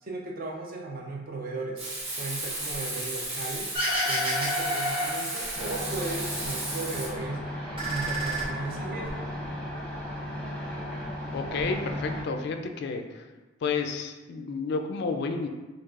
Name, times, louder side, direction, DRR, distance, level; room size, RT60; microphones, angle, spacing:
voice 1, 0.0-1.8 2.2-3.7 4.0-7.5 7.9-9.2, right 3 dB, 50° right, 0 dB, 0.5 m, -36 dB
Frying (food), 1.8-7.1, right 2 dB, 85° right, 1.3 m, -34 dB
sound 1, 3.7-6.1 6.4-7.2 7.6-9.1, equal, 30° right, 1.0 m, -30 dB
sound 2, 5.5-12.2, left 1 dB, 5° left, 0.7 m, -35 dB
voice 2, 11.3-13.3 13.6-15.5, left 4 dB, 60° left, 6 dB, 0.3 m, -31 dB
4.6 x 2.4 x 2.4 m, 1.2 s
head